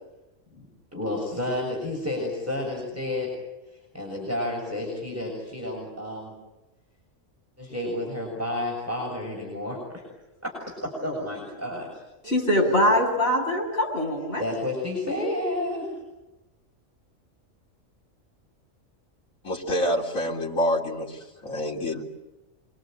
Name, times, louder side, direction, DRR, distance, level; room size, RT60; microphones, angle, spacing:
voice 1, 0.5-3.3 3.9-6.3 7.6-10.0 10.4-12.0 14.4-15.9, left 1 dB, 10° right, -2 dB, 6.9 m, -31 dB
voice 2, 12.2-14.4, left 1 dB, 50° left, -1 dB, 8.4 m, -23 dB
voice 3, 19.4-22.0, left 1 dB, 80° left, 0 dB, 4.0 m, -27 dB
27.0 x 23.0 x 9.2 m, 1.0 s
omnidirectional pair, 1.4 m